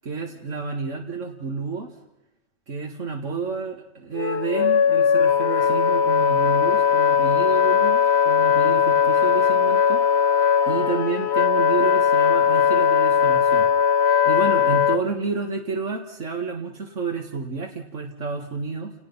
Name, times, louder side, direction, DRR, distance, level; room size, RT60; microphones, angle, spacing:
voice 1, 0.0-1.9 2.7-10.0 10.7-13.7 14.0-18.9, right 4 dB, 85° right, 2 dB, 2.3 m, -30 dB
Wind instrument woodwind instrument, 4.1-15.0, left 7 dB, 60° left, 1.2 m, -19 dB
28.5 x 19.5 x 5.6 m, 0.87 s
omnidirectional pair, 1.3 m